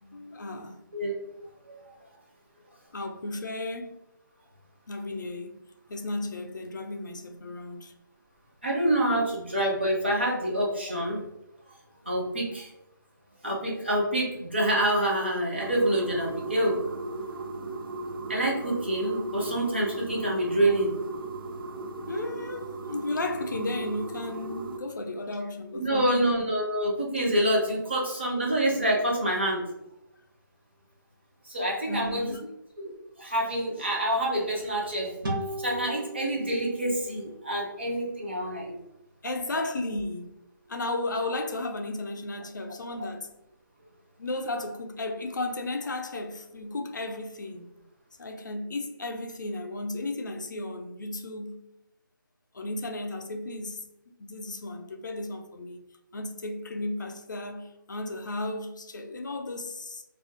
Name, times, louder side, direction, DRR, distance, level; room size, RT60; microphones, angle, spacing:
voice 1, 0.0-0.8 2.9-4.0 4.9-5.6 5.9-7.9 22.1-26.3 31.9-32.5 39.2-40.4 40.7-43.3 44.2-47.7 48.2-51.6 52.5-53.8 54.2-55.8 56.1-60.0, left 2 dB, 60° left, 0.4 m, -34 dB
voice 2, 8.6-11.2 12.1-12.7 13.4-16.8 18.3-20.9 25.7-29.6 31.4-32.2 32.8-32.9 33.2-35.1 35.6-38.8, right 1 dB, 30° right, 0.5 m, -27 dB
sound 1, 15.6-24.8, right 2 dB, 90° right, 0.4 m, -37 dB
sound 2, 35.2-38.6, right 1 dB, 75° right, 0.8 m, -38 dB
2.3 x 2.1 x 2.6 m
hypercardioid pair, 175°, 11 cm